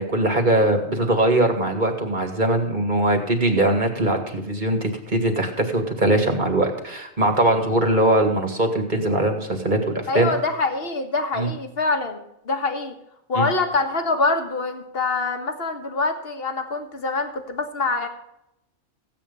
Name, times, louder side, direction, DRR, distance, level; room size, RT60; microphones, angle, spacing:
voice 1, 0.0-10.3 11.3-11.5 13.3-13.5, right 1 dB, 35° right, 4 dB, 2.4 m, -21 dB
voice 2, 10.1-12.9 13.3-18.1, left 3 dB, 45° left, 6 dB, 1.8 m, -25 dB
15.5 x 8.9 x 5.5 m, 0.82 s
omnidirectional pair, 1.4 m